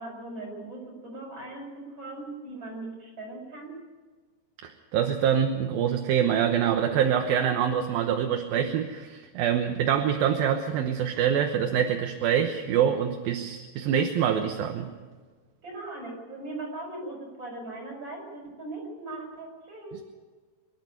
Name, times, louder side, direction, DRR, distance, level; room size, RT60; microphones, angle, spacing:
voice 1, 0.0-3.8 15.6-20.0, right 2 dB, 25° right, 0 dB, 7.3 m, -39 dB
voice 2, 4.6-14.9, right 8 dB, 70° right, 4 dB, 2.6 m, -25 dB
23.5 x 11.5 x 9.6 m, 1.4 s
omnidirectional pair, 4.7 m